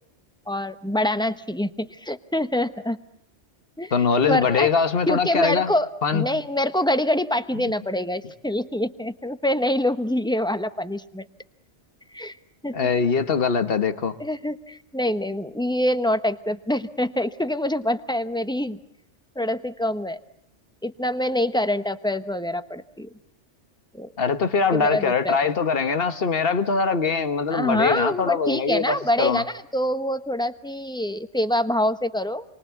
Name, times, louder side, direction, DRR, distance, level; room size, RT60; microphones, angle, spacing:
voice 1, 0.5-3.0 3.8-4.7 5.1-11.2 12.1-12.4 12.6-12.9 14.2-18.8 19.3-20.2 20.8-23.1 23.9-24.1 24.7-25.4 27.5-32.4, left 1 dB, 5° left, 11 dB, 1.0 m, -25 dB
voice 2, 3.9-5.7 6.0-6.3 12.7-14.1 24.2-29.4, left 5 dB, 50° left, 10 dB, 1.6 m, -22 dB
29.0 x 23.5 x 8.3 m, 0.71 s
omnidirectional pair, 1.2 m